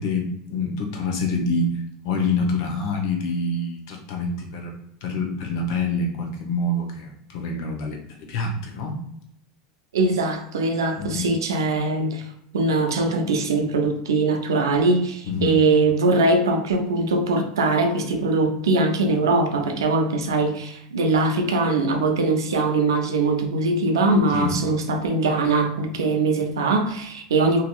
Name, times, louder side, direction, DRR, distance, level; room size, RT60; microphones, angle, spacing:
voice 1, 0.0-1.7 2.0-4.7 5.0-9.0 11.0-11.2 15.3-15.5 24.3-24.5, left 3 dB, 70° left, 2 dB, 0.8 m, -26 dB
voice 2, 9.9-12.3 12.5-27.6, right 3 dB, 90° right, 5 dB, 0.5 m, -21 dB
2.8 x 2.7 x 2.3 m, 0.73 s
hypercardioid pair, 95°, 2 cm